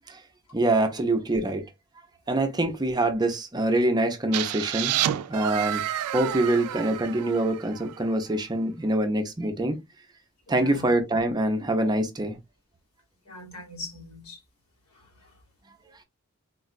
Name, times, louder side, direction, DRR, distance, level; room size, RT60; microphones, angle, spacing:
voice 1, 0.5-1.6 2.3-5.8 6.1-9.8 10.5-12.4, right 1 dB, 20° right, 0.5 m, -25 dB
sound 1, 4.3-8.1, right 12 dB, 85° right, 0.3 m, -30 dB
voice 2, 10.5-11.0 13.2-14.4 14.9-15.3, left 1 dB, 90° left, 1.6 m, -42 dB
3.8 x 2.3 x 2.4 m
head